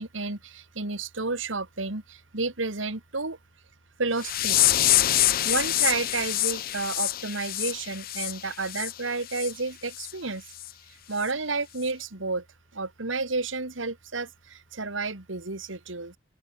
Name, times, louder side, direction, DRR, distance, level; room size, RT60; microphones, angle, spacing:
voice 1, 0.0-3.4 4.0-4.7 5.4-10.4 11.1-12.4 12.7-16.2, right 3 dB, 85° right, 2.6 m, -31 dB
sound 1, 4.2-8.9 9.3-9.5 10.0-10.1 10.6-10.7 11.2-11.3, left 14 dB, 50° left, 0.5 m, -25 dB
open air
head